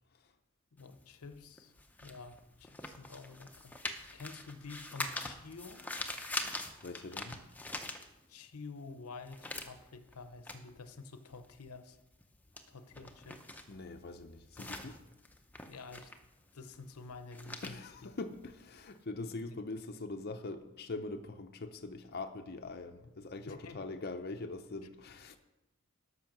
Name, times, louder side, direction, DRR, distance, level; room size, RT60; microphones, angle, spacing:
voice 1, 0.7-1.7 2.0-3.8 4.1-5.8 8.3-12.0 12.7-13.4 15.6-16.1 16.5-18.1 23.5-23.8, left 4 dB, 85° left, 10 dB, 0.8 m, -49 dB
sound 1, 0.8-8.6 8.9-19.0, left 2 dB, 5° left, 0.6 m, -44 dB
voice 2, 6.8-7.4 13.7-15.0 17.6-25.4, left 3 dB, 45° left, 6 dB, 0.6 m, -43 dB
12.5 x 5.7 x 6.0 m, 0.97 s
head